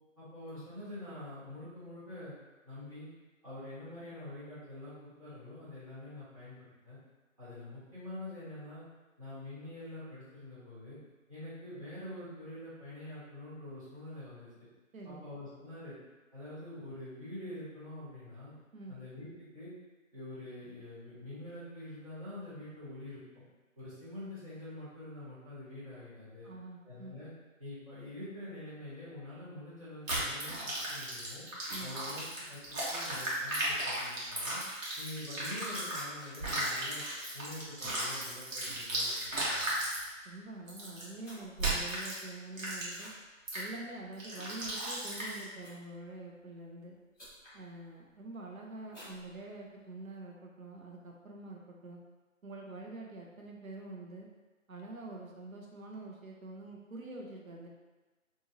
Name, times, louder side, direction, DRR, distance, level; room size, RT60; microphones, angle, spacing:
voice 1, 0.2-2.4 2.6-3.1 3.4-7.0 7.4-8.8 9.2-11.0 11.3-14.5 15.0-16.0 16.3-18.5 18.9-19.7 20.1-23.4 23.8-26.5 26.8-27.3 27.6-31.4 31.8-32.6 32.9-34.6 35.0-37.0 37.3-39.9, left 1 dB, 25° right, -14 dB, 1.2 m, -46 dB
voice 2, 14.9-15.3 18.7-19.0 26.4-27.2 31.7-31.9 40.2-43.1 43.5-47.0 47.5-52.0 52.4-54.3 54.7-57.7, right 2 dB, 90° right, -1 dB, 0.8 m, -46 dB
sound 1, 30.1-36.0 36.3-40.0 40.7-41.0 41.6-42.2 42.6-43.1 43.5-43.7 44.2-45.4, right 1 dB, 70° right, 1.2 m, -35 dB
sound 2, 35.8-37.3 37.6-37.9 38.3-38.6 38.9-40.1 40.7-43.2 43.6-44.0 44.5-46.1 46.8-46.9 47.1-47.6 48.1-48.4 48.9-49.9, equal, 15° left, 1.2 m, -54 dB
3.0 x 2.6 x 2.5 m, 1.2 s
hypercardioid pair, 180°, 40 cm